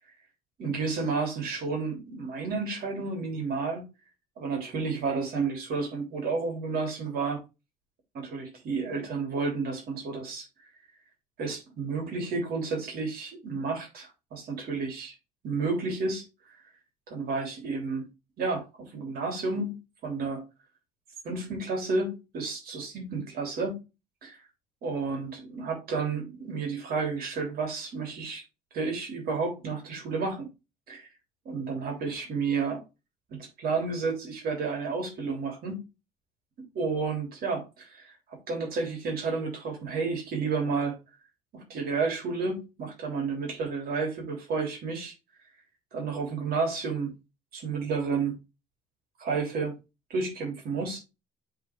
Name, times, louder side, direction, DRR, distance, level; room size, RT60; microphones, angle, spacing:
voice 1, 0.6-3.9 4.4-7.4 8.1-10.5 11.4-15.1 15.4-16.2 17.1-18.1 18.4-20.4 21.2-23.8 24.2-24.4 24.8-28.4 28.7-30.5 30.9-31.1 31.4-32.8 33.3-35.8 36.7-38.1 38.5-41.0 41.5-45.1 45.9-47.1 47.5-48.3 49.2-49.7 50.1-51.0, right 4 dB, 65° right, 3.2 m, -31 dB
7.5 x 3.9 x 3.5 m
cardioid pair, 110°, 17 cm